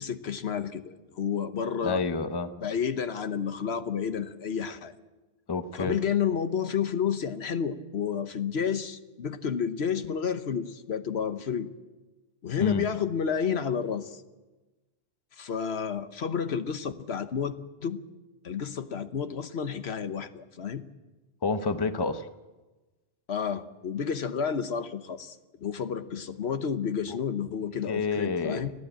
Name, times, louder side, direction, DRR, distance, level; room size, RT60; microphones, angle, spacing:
voice 1, 0.0-2.0 2.6-4.9 5.7-11.7 12.4-14.2 15.4-17.6 17.8-18.0 18.4-20.8 23.3-28.7, left 7 dB, 75° left, 10 dB, 1.2 m, -30 dB
voice 2, 1.8-2.5 5.5-6.0 12.6-12.8 21.4-22.3 27.1-27.2 27.9-28.7, left 4 dB, 25° left, 10 dB, 0.8 m, -29 dB
30.0 x 11.0 x 8.8 m, 1.2 s
omnidirectional pair, 1.1 m